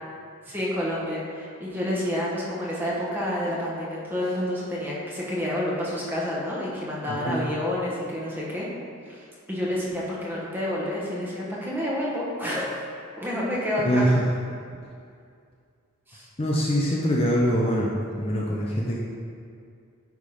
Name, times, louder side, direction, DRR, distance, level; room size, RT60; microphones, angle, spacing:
voice 1, 0.5-8.7 9.1-12.7 13.2-14.0 16.1-16.3, left 1 dB, 10° right, -5 dB, 1.2 m, -29 dB
voice 2, 7.1-7.4 13.8-14.2 16.4-19.0, equal, 25° left, -4 dB, 0.6 m, -24 dB
9.1 x 3.7 x 4.9 m, 2.3 s
head